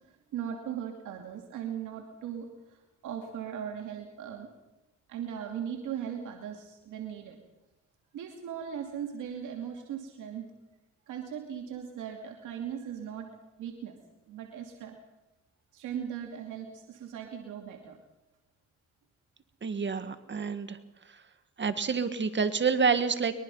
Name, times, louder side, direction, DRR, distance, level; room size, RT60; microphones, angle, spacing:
voice 1, 0.3-2.5 3.0-4.5 5.1-7.4 8.1-10.5 11.1-13.3 13.6-14.0 14.3-15.0 15.7-18.0, right 8 dB, 85° right, 2 dB, 2.7 m, -38 dB
voice 2, 19.6-20.8 21.1-21.2 21.6-23.3, right 5 dB, 40° right, 10 dB, 1.7 m, -28 dB
23.0 x 22.0 x 5.6 m, 0.97 s
cardioid pair, 90°, 30 cm